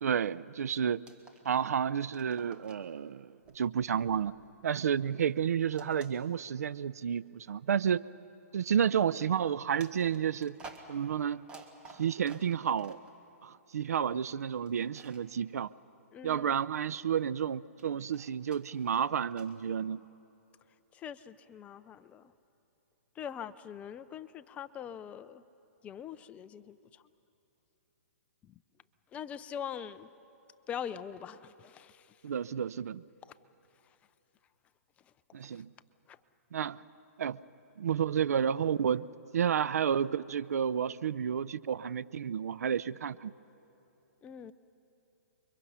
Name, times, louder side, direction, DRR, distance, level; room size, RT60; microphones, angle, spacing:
voice 1, 0.0-1.0 1.4-4.3 4.6-8.0 8.5-10.6 10.9-11.5 12.0-13.0 13.4-15.7 16.2-20.0 32.2-33.0 35.3-35.7 36.5-36.8 37.2-37.4 37.8-39.0 39.3-43.3, right 8 dB, 70° right, 18 dB, 0.5 m, -31 dB
sound 1, 1.0-1.7 2.0-2.9 3.4-4.9 5.7-6.8 7.4-7.6 9.8-13.1 14.7-15.3 17.8-19.6, right 3 dB, 10° right, 1.6 m, -53 dB
voice 2, 16.1-16.6 20.9-22.3 23.2-25.4 25.8-27.0 28.4-28.6 29.1-30.1 30.7-32.2 33.2-33.3 35.4-35.6 36.1-36.2 44.2-44.5, left 8 dB, 15° left, 14 dB, 0.5 m, -43 dB
29.5 x 23.0 x 5.7 m, 2.9 s
hypercardioid pair, 145°, 9 cm